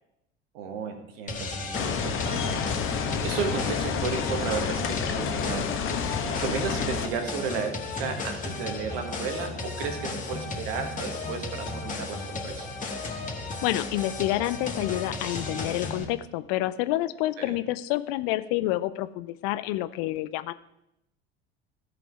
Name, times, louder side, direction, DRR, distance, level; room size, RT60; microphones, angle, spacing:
voice 1, 0.5-2.7 3.2-5.7 6.3-12.7 17.4-17.6, right 6 dB, 65° right, 5 dB, 1.8 m, -33 dB
sound 1, 1.3-16.0, left 3 dB, 25° left, 2.0 m, -35 dB
sound 2, 1.7-7.1, left 7 dB, 40° left, 1.2 m, -29 dB
voice 2, 13.6-20.5, left 16 dB, 55° left, 14 dB, 0.6 m, -28 dB
14.5 x 5.1 x 4.9 m, 0.83 s
figure-of-eight pair, 65°, 31 cm